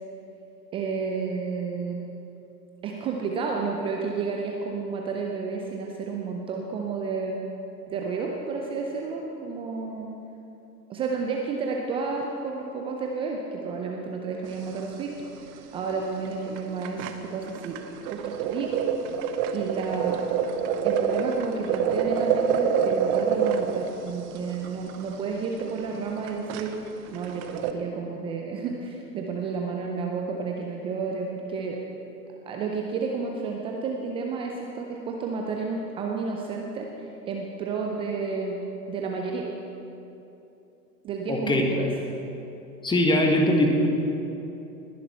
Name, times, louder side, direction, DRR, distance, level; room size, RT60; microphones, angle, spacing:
voice 1, 0.7-2.0 2.8-7.4 7.9-10.1 10.9-15.1 15.4-17.8 18.1-18.8 19.2-20.2 20.8-26.7 27.1-31.8 32.5-38.6 38.9-39.5 41.0-41.9, right 4 dB, 10° right, 0 dB, 0.4 m, -31 dB
sound 1, 14.5-14.9 15.2-15.3 15.6-15.8 16.3-16.4 16.6-27.7, right 7 dB, 30° right, 0.8 m, -27 dB
voice 2, 41.3-41.7 42.8-43.9, left 1 dB, 10° left, 2 dB, 1.5 m, -21 dB
20.0 x 10.5 x 4.3 m, 2.9 s
figure-of-eight pair, 105°, 50 cm